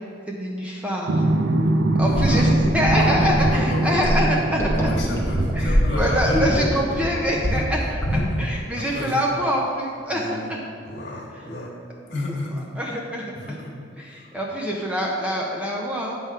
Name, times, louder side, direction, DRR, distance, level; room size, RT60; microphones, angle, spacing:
voice 1, 0.3-1.2 2.0-4.7 5.5-8.0 8.4-10.2 12.8-13.2 14.0-16.2, equal, 5° right, -3 dB, 0.6 m, -25 dB
sound 1, 1.1-7.6, right 1 dB, 70° right, 0.5 m, -23 dB
voice 2, 2.0-2.7 3.0-4.2 4.7-7.1 7.5-7.6 8.1-8.4 8.8-9.2 10.1-10.5 10.8-11.7 12.1-12.7 13.3-13.7 14.0-14.3, left 1 dB, 55° left, -3 dB, 1.6 m, -31 dB
sound 2, 2.0-8.6, equal, 15° left, 1.0 m, -24 dB
8.7 x 3.6 x 5.5 m, 2.4 s
head